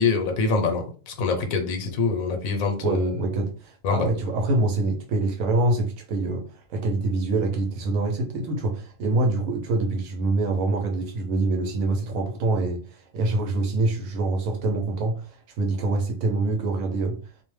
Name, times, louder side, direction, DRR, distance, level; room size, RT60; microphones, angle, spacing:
voice 1, 0.0-3.1 3.8-4.1, left 4 dB, 85° left, 1.1 m, -25 dB
voice 2, 2.8-12.8 13.1-17.2, right 2 dB, 85° right, 1.0 m, -25 dB
2.6 x 2.1 x 3.1 m
omnidirectional pair, 1.4 m